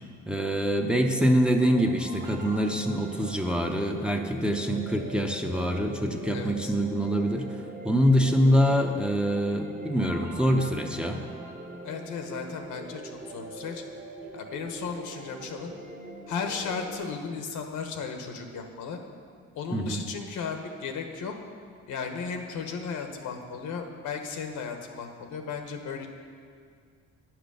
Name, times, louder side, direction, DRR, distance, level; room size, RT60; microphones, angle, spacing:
voice 1, 0.3-7.5 7.8-11.2 19.7-20.0, equal, 5° right, 2 dB, 0.8 m, -25 dB
sound 1, 1.0-17.0, right 2 dB, 30° right, 1.5 m, -42 dB
voice 2, 6.3-6.7 11.8-13.8 14.3-15.7 16.3-19.0 19.5-21.3 21.9-26.1, left 5 dB, 80° left, 4 dB, 1.2 m, -35 dB
9.5 x 6.0 x 6.8 m, 2.1 s
cardioid pair, 90°, 30 cm